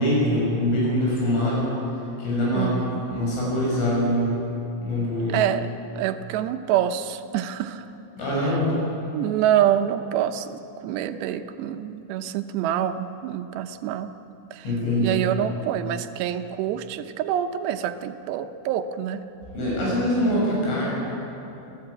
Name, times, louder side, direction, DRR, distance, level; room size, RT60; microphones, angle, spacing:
voice 1, 0.0-1.7 2.2-2.8 3.1-4.4 4.8-5.4 8.2-8.7 14.6-15.2 19.5-20.8, left 1 dB, 85° left, -5 dB, 9.9 m, -23 dB
voice 2, 2.5-3.1 5.3-5.7 6.0-7.9 8.4-8.6 9.1-14.1 14.5-14.7 15.0-19.2, right 10 dB, 75° right, 8 dB, 2.8 m, -26 dB
27.5 x 16.0 x 8.7 m, 2.9 s
omnidirectional pair, 5.5 m